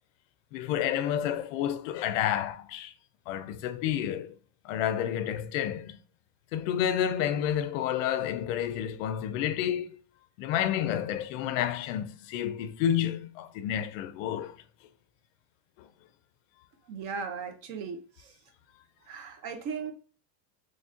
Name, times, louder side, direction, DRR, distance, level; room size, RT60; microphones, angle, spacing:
voice 1, 0.5-2.9 3.3-4.4 4.6-6.0 6.5-10.0 10.4-14.6, left 10 dB, 55° left, 0.5 m, -30 dB
voice 2, 16.9-18.3 19.1-19.9, right 5 dB, 45° right, 0.8 m, -37 dB
4.0 x 3.1 x 2.5 m
supercardioid pair, 160°, 49 cm